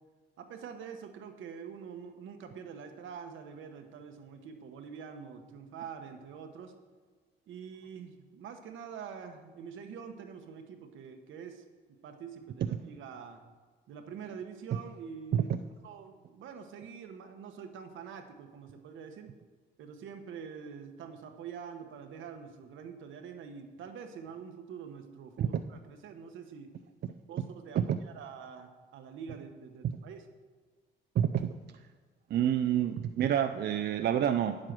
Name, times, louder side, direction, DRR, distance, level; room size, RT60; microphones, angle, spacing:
voice 1, 0.4-6.7 7.5-11.6 12.0-13.4 13.9-15.5 15.8-19.3 19.8-26.7 27.3-30.3, right 6 dB, 80° right, 6 dB, 1.2 m, -45 dB
voice 2, 31.2-31.5 32.3-34.6, right 9 dB, 55° right, 8 dB, 0.5 m, -28 dB
8.8 x 7.6 x 6.1 m, 1.4 s
cardioid pair, 90°, 20 cm